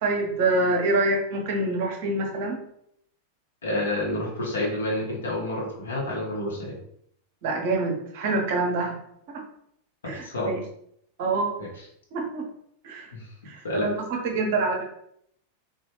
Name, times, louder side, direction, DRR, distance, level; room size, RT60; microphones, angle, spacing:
voice 1, 0.0-2.6 7.4-9.0 9.3-9.4 10.0-10.6 11.2-11.5 12.1-12.5 12.8-13.1 13.4-14.8, right 2 dB, 50° right, 2 dB, 0.8 m, -26 dB
voice 2, 3.6-6.7 10.0-10.5 11.6-11.7 13.1-13.3 13.6-13.9, left 1 dB, 70° left, -4 dB, 1.0 m, -29 dB
3.0 x 2.3 x 3.0 m, 0.71 s
figure-of-eight pair, 90°, 0 cm